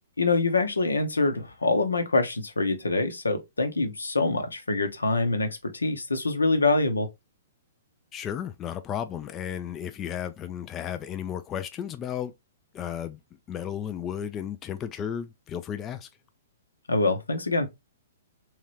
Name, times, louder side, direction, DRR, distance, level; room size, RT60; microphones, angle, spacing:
voice 1, 0.2-7.1 16.9-17.7, left 3 dB, 80° left, 0.9 m, -25 dB
voice 2, 8.1-12.3 12.7-13.2 13.5-16.1, left 9 dB, 25° left, 0.4 m, -34 dB
3.7 x 3.1 x 3.1 m
figure-of-eight pair, 115°, 0 cm